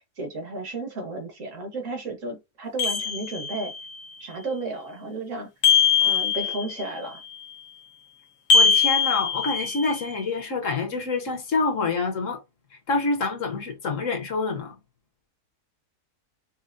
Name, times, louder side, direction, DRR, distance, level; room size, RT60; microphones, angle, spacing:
voice 1, 0.2-3.7 4.2-5.5 6.0-7.2, right 2 dB, 55° right, 1.5 m, -33 dB
sound 1, 2.8-3.8 5.6-6.9 8.5-10.0, left 6 dB, 85° left, 1.4 m, -21 dB
voice 2, 8.5-12.4 12.9-14.7, left 4 dB, 55° left, 1.1 m, -27 dB
5.5 x 2.0 x 2.6 m
omnidirectional pair, 1.7 m